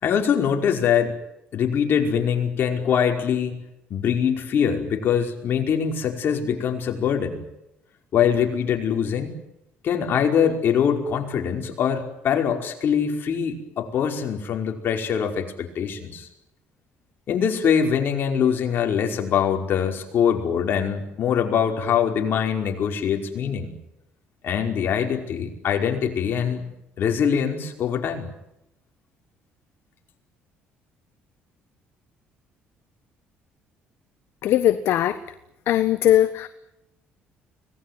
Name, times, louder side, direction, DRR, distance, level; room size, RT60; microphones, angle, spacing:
voice 1, 0.0-1.1 1.5-3.6 3.9-7.4 8.1-9.4 9.8-16.3 17.3-23.7 24.4-26.6 27.0-28.3, left 7 dB, 55° left, 3 dB, 5.2 m, -23 dB
voice 2, 34.4-35.2 35.7-36.5, left 12 dB, 70° left, 11 dB, 1.3 m, -19 dB
25.5 x 19.5 x 9.6 m, 0.86 s
cardioid pair, 100°, 4 cm